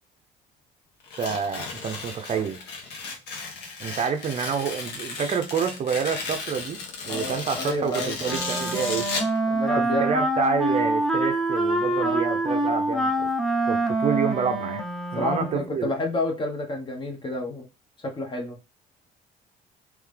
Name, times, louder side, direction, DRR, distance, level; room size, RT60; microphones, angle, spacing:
Tearing, 1.0-9.4, left 4 dB, 85° left, 1.2 m, -34 dB
voice 1, 1.2-2.6 3.8-6.8 7.0-9.1 9.7-13.3 13.7-14.8 15.1-15.9, right 6 dB, 40° right, 0.5 m, -28 dB
voice 2, 7.1-8.7 9.5-10.2 12.0-12.2 15.2-17.7 18.0-18.6, left 2 dB, 30° left, 1.2 m, -30 dB
Wind instrument woodwind instrument, 8.2-15.8, right 1 dB, ahead, 0.7 m, -25 dB
3.6 x 3.2 x 3.3 m
cardioid pair, 110°, 17 cm